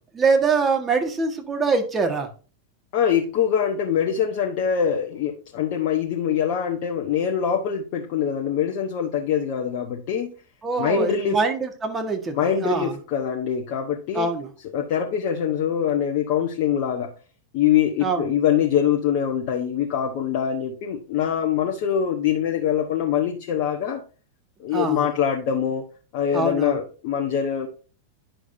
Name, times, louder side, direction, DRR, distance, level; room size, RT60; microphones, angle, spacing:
voice 1, 0.1-2.3 10.6-13.0 14.1-14.5 18.0-18.3 24.7-25.1 26.3-26.8, right 4 dB, 20° right, 4 dB, 1.7 m, -24 dB
voice 2, 2.9-10.3 10.8-11.4 12.3-14.3 14.7-17.1 17.5-24.0 24.6-25.8 26.1-27.7, left 8 dB, 45° left, 2 dB, 1.1 m, -23 dB
10.0 x 6.3 x 2.7 m, 0.37 s
figure-of-eight pair, 90°, 0 cm